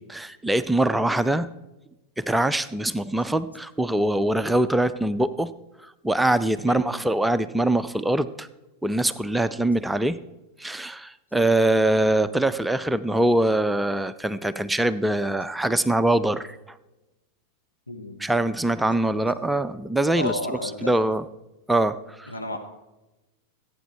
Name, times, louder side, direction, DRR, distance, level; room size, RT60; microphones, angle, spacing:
voice 1, 0.0-1.5 2.2-5.5 5.8-8.5 8.8-10.2 10.6-16.8 18.2-21.2 21.7-22.3, right 1 dB, 5° right, 13 dB, 0.4 m, -23 dB
voice 2, 6.7-7.0 17.9-18.2 20.2-21.1 22.3-22.6, left 2 dB, 85° left, 2 dB, 1.7 m, -32 dB
14.5 x 9.1 x 4.5 m, 1.0 s
figure-of-eight pair, 90°, 0 cm